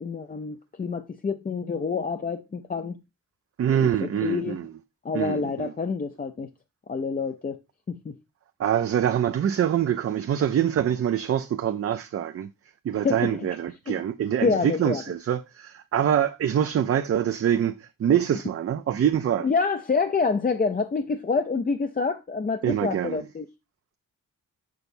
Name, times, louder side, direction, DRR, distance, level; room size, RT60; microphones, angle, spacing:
voice 1, 0.0-3.0 3.7-4.6 5.0-6.5 6.9-7.6 7.9-8.1 13.0-13.3 13.9-14.0 14.4-15.0 19.4-23.4, left 4 dB, 25° left, 0.4 m, -27 dB
voice 2, 3.6-4.7 5.1-5.7 8.6-12.5 12.8-19.5 22.6-23.2, right 9 dB, 45° right, 0.4 m, -25 dB
6.7 x 6.2 x 2.6 m
wide cardioid pair, 145°, 33 cm